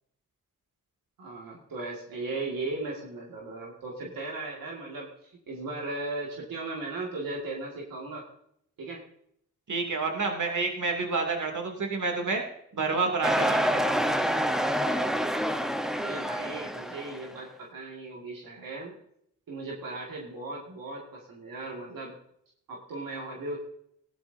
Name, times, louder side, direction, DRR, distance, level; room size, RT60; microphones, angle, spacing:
voice 1, 1.2-8.3 8.8-9.0 16.0-18.9 19.5-22.1 22.7-23.6, right 2 dB, 85° right, -2 dB, 2.1 m, -37 dB
voice 2, 9.7-12.4 12.7-14.2, right 4 dB, 60° right, 2 dB, 2.6 m, -29 dB
sound 1, 13.2-17.3, equal, ahead, 1.0 m, -27 dB
16.5 x 11.5 x 2.7 m, 0.71 s
supercardioid pair, 45°, 33 cm